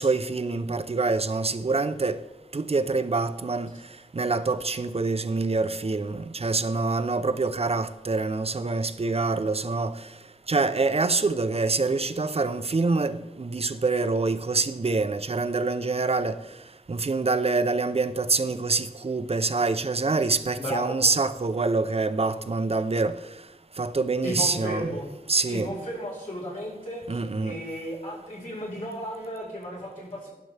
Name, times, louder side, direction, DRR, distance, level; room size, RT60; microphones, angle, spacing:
voice 1, 0.0-2.2 2.5-3.7 4.1-9.9 10.5-16.4 16.9-23.1 23.8-24.9 25.3-25.7 27.1-27.6, right 3 dB, 40° right, 0.6 m, -25 dB
voice 2, 20.6-21.0 24.2-25.1 25.5-30.3, equal, 55° left, 4.5 m, -34 dB
20.5 x 6.8 x 3.4 m
wide cardioid pair, 85°, 16 cm